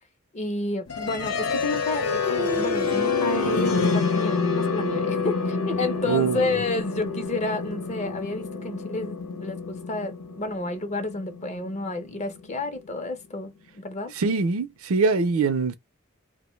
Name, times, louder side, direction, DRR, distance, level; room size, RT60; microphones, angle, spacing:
voice 1, 0.3-14.1, left 2 dB, 30° left, 0.5 m, -31 dB
sound 1, 0.9-12.8, left 4 dB, 85° left, 0.9 m, -27 dB
voice 2, 6.1-6.5 14.2-15.8, right 4 dB, 65° right, 0.4 m, -23 dB
2.5 x 2.1 x 3.0 m
head